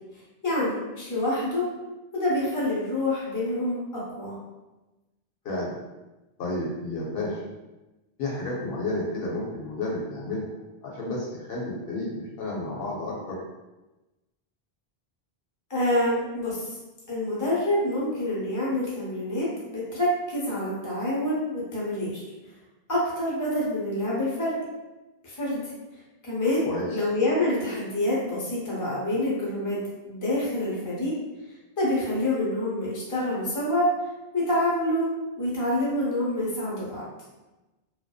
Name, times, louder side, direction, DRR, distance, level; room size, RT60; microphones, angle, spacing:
voice 1, 0.4-1.7 2.1-4.3 15.7-16.6 17.1-22.2 22.9-24.6 25.2-25.6 26.2-29.8 30.0-31.1 31.8-33.9 34.3-35.1 35.4-37.1, left 1 dB, 20° left, -6 dB, 0.6 m, -27 dB
voice 2, 5.4-5.7 6.4-7.4 8.2-10.5 10.8-13.4 26.6-27.1, left 2 dB, 70° left, -4 dB, 0.8 m, -31 dB
2.5 x 2.1 x 2.3 m, 1.1 s
omnidirectional pair, 1.1 m